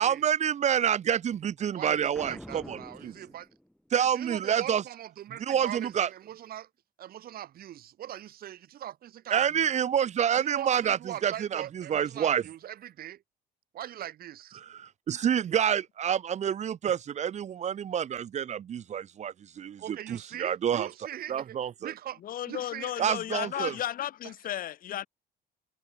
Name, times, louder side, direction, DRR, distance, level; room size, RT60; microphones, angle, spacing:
voice 1, 0.0-3.2 3.9-4.8 5.4-6.1 9.3-12.4 14.5-20.9 21.3-21.9 23.0-23.8, right 9 dB, 45° right, 0.9 m, -28 dB
voice 2, 1.7-3.5 3.9-6.7 7.0-9.7 10.4-13.2 13.7-14.6 19.8-22.2 22.5-22.9 23.5-23.8 24.2-24.3, right 12 dB, 60° right, 4.6 m, -41 dB
Boom, 2.1-4.0, equal, 5° left, 6.6 m, -46 dB
voice 3, 22.2-25.1, left 11 dB, 55° left, 1.3 m, -34 dB
cardioid pair, 110°, 17 cm